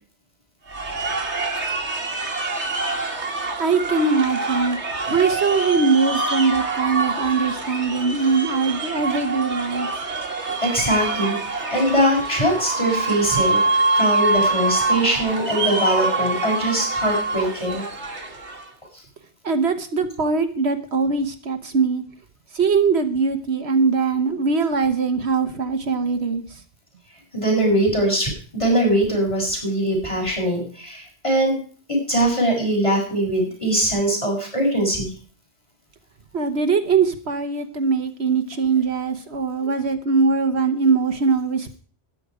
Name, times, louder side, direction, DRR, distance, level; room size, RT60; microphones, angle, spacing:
sound 1, 0.7-18.7, right 3 dB, 90° right, 2.2 m, -25 dB
voice 1, 3.6-4.8 5.1-9.9 19.4-22.0 22.5-26.6 36.3-41.7, right 4 dB, 70° right, 7 dB, 1.5 m, -21 dB
voice 2, 10.6-11.4 11.7-13.6 14.0-17.8 27.3-31.6 31.9-35.1, right 1 dB, 25° left, 0 dB, 6.6 m, -21 dB
13.0 x 10.5 x 5.0 m, 0.41 s
omnidirectional pair, 1.1 m